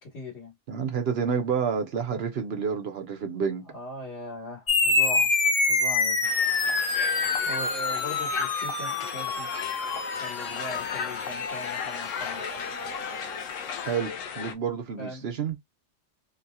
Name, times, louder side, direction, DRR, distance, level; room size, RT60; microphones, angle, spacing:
voice 1, 0.0-0.5 3.7-5.3 5.7-6.3 7.4-9.5 10.2-12.4 15.0-15.2, left 1 dB, 60° left, 1.4 m, -40 dB
voice 2, 0.7-3.6 13.9-15.6, right 6 dB, 60° right, 0.9 m, -29 dB
sound 1, 4.7-13.6, left 3 dB, 40° left, 0.6 m, -27 dB
Crowd, 6.2-14.5, left 7 dB, 80° left, 1.0 m, -35 dB
2.7 x 2.7 x 2.2 m
omnidirectional pair, 1.3 m